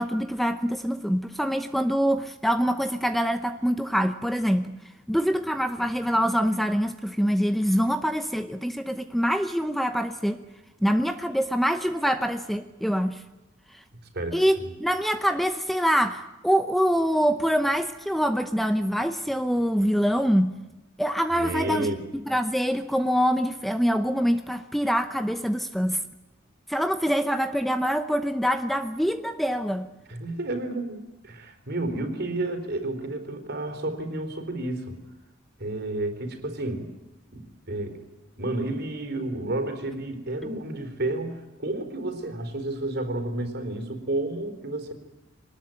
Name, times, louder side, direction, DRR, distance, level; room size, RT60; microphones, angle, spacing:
voice 1, 0.0-4.8 5.1-10.4 10.8-13.2 13.7-13.8 14.3-20.6 21.0-26.0 26.7-29.9 40.4-40.5, equal, ahead, 9 dB, 0.8 m, -25 dB
voice 2, 14.1-14.7 21.3-22.0 30.1-35.0 35.6-36.9 37.3-37.4 37.7-38.0 38.4-44.9, right 2 dB, 55° right, 8 dB, 3.9 m, -31 dB
23.5 x 20.0 x 9.1 m, 1.0 s
head